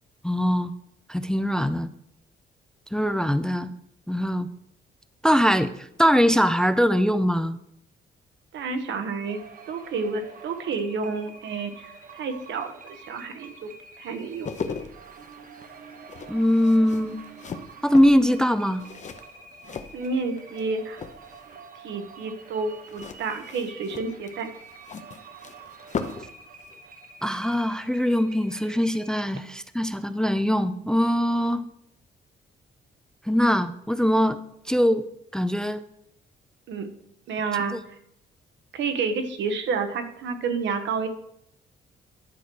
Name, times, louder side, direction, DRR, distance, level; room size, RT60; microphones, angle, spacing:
voice 1, 0.2-0.7 1.1-1.9 2.9-3.7 4.1-4.5 5.2-7.6 16.3-17.2 17.8-18.8 27.2-31.6 33.3-34.4 34.7-35.0 35.3-35.8, equal, 5° left, 12 dB, 0.4 m, -22 dB
voice 2, 8.5-14.5 19.9-21.0 21.8-24.5 36.7-36.9 37.3-38.0 38.7-41.1, right 4 dB, 80° right, 7 dB, 1.2 m, -30 dB
sound 1, 9.3-29.2, right 4 dB, 50° right, 1.0 m, -47 dB
sound 2, 14.2-20.6 20.9-21.5 22.9-26.4 26.6-26.8, left 6 dB, 40° left, 0.7 m, -38 dB
10.5 x 4.6 x 6.1 m, 0.75 s
cardioid pair, 130°, 19 cm